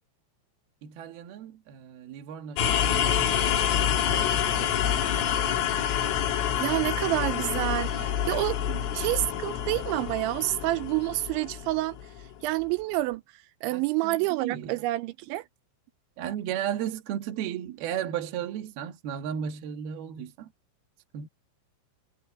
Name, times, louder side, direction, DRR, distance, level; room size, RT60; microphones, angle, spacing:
voice 1, 0.8-3.7 4.1-4.9 5.4-5.8 7.9-8.2 13.7-14.8 16.2-20.5 21.1-21.3, right 9 dB, 65° right, 3.0 m, -35 dB
sound 1, 2.6-12.3, left 9 dB, 90° left, 4.9 m, -27 dB
voice 2, 6.6-12.0 12.4-13.2 13.6-15.4, right 18 dB, 85° right, 2.8 m, -28 dB
omnidirectional pair, 5.6 m